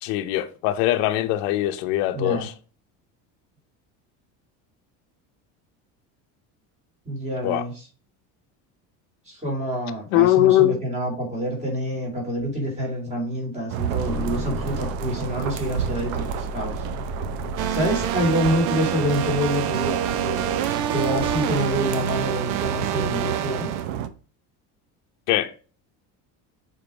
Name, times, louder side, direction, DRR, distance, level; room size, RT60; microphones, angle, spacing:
voice 1, 0.0-2.5 7.4-7.6 10.1-10.8 25.3-25.5, left 15 dB, 90° left, 0.9 m, -21 dB
voice 2, 2.1-2.5 7.0-7.7 9.2-16.8 17.7-20.6 20.9-23.7, equal, 15° right, 3.3 m, -27 dB
sound 1, 12.4-12.5 14.0-18.1, left 5 dB, ahead, 1.7 m, -35 dB
sound 2, 13.7-24.1, right 9 dB, 75° right, 0.9 m, -31 dB
sound 3, 17.6-23.8, right 10 dB, 50° right, 0.7 m, -27 dB
7.0 x 4.1 x 5.0 m
cardioid pair, 175°, 38 cm